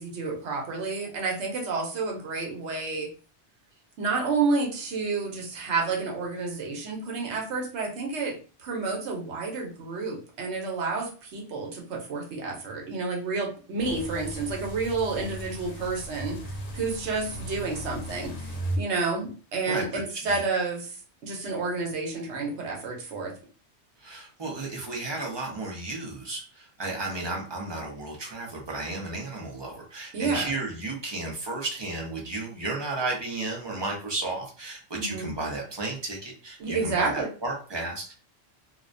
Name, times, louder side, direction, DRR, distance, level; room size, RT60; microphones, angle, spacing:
voice 1, 0.0-3.1 4.0-23.3 30.1-30.5 34.9-35.3 36.6-37.3, right 4 dB, 85° right, 0 dB, 1.0 m, -30 dB
sound 1, 13.8-18.8, equal, 80° left, 0.9 m, -36 dB
voice 2, 19.6-20.4 24.0-38.1, right 2 dB, 30° right, -1 dB, 0.5 m, -33 dB
2.4 x 2.1 x 2.5 m, 0.38 s
omnidirectional pair, 1.2 m